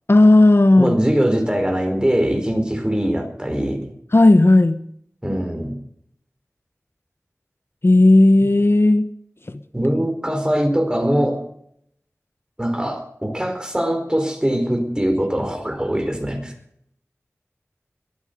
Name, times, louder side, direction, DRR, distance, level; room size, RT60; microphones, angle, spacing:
voice 1, 0.1-1.0 4.1-4.8 7.8-9.1 9.5-9.6, left 2 dB, 50° left, 10 dB, 1.0 m, -13 dB
voice 2, 0.8-3.9 5.2-5.8 9.7-11.4 12.6-16.5, equal, 15° right, 5 dB, 4.4 m, -22 dB
22.5 x 9.1 x 6.7 m, 0.70 s
wide cardioid pair, 45°, 5 cm